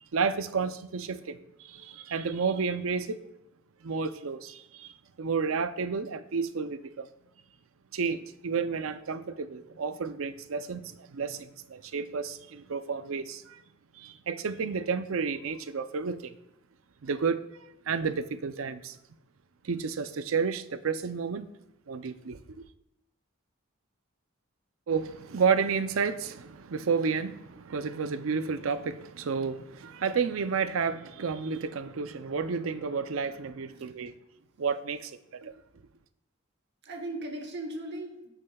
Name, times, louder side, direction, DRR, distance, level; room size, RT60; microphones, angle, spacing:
voice 1, 0.0-3.2 3.8-4.9 5.2-7.1 7.9-13.6 13.9-16.4 17.0-19.0 19.6-21.5 21.9-22.6 24.9-34.1 34.6-35.5, right 5 dB, 85° right, 0.5 m, -31 dB
voice 2, 33.7-34.1 36.8-38.3, right 1 dB, 55° right, 1.1 m, -38 dB
14.5 x 6.4 x 2.3 m
head